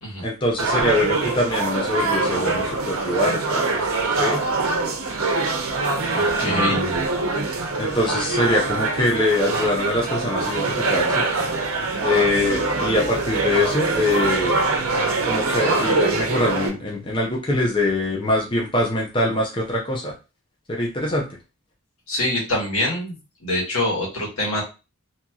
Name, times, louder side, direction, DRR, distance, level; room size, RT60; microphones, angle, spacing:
voice 1, 0.2-3.6 4.2-4.4 6.4-7.1 7.8-11.2 12.0-14.6 15.3-20.1 20.7-21.3, left 1 dB, 25° left, -2 dB, 0.6 m, -23 dB
sound 1, 0.6-16.7, right 3 dB, 75° right, 0.7 m, -23 dB
voice 2, 6.1-6.8 22.1-24.6, left 1 dB, 80° left, -3 dB, 1.4 m, -25 dB
2.8 x 2.8 x 2.3 m, 0.29 s
head